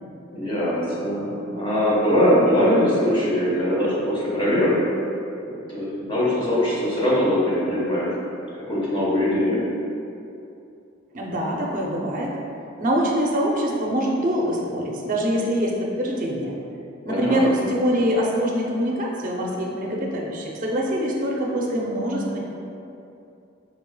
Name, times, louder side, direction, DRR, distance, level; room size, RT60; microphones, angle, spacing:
voice 1, 0.3-4.7 5.5-8.1 8.5-9.6 17.1-17.7, equal, 25° left, -8 dB, 1.1 m, -22 dB
voice 2, 11.1-12.4 12.8-16.6 17.0-22.4, equal, 40° right, -2 dB, 0.6 m, -24 dB
4.5 x 4.0 x 2.2 m, 2.7 s
head